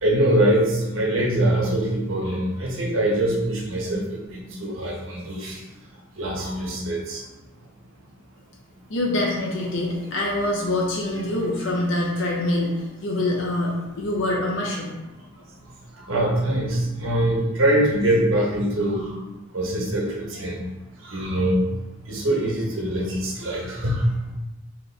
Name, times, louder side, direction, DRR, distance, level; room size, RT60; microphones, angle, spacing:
voice 1, 0.0-5.6 6.2-7.2 16.0-19.1 19.5-20.6 21.0-21.6 22.1-24.0, right 1 dB, 75° right, -2 dB, 1.1 m, -23 dB
voice 2, 8.9-14.9, left 1 dB, 60° left, -3 dB, 0.8 m, -25 dB
4.5 x 3.2 x 3.3 m, 1.0 s
head